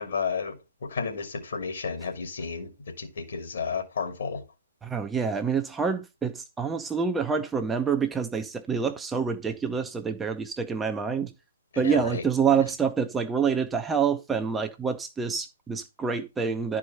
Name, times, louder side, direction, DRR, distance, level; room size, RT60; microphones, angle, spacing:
voice 1, 0.0-4.4 11.7-12.2, left 5 dB, 60° left, 2.6 m, -32 dB
voice 2, 4.8-11.3 11.8-16.8, right 6 dB, 10° right, 0.9 m, -27 dB
11.5 x 5.0 x 5.6 m
figure-of-eight pair, 130°, 0 cm